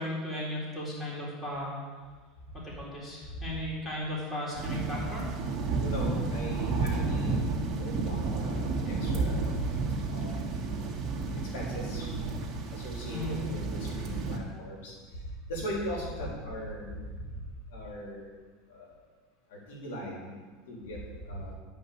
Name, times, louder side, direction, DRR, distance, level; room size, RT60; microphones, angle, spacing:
voice 1, 0.0-1.8 2.5-5.3 13.1-13.4, left 1 dB, 15° left, -5 dB, 3.9 m, -36 dB
sound 1, 4.5-14.4, right 3 dB, 35° right, 2.1 m, -31 dB
voice 2, 5.8-9.7 10.1-10.6 11.5-12.1 12.7-15.2 15.5-17.2 17.7-18.3 18.7-18.9 19.5-20.3 20.7-21.5, equal, 85° left, -3 dB, 3.7 m, -39 dB
11.0 x 5.7 x 8.2 m, 1.5 s
supercardioid pair, 130°, 0 cm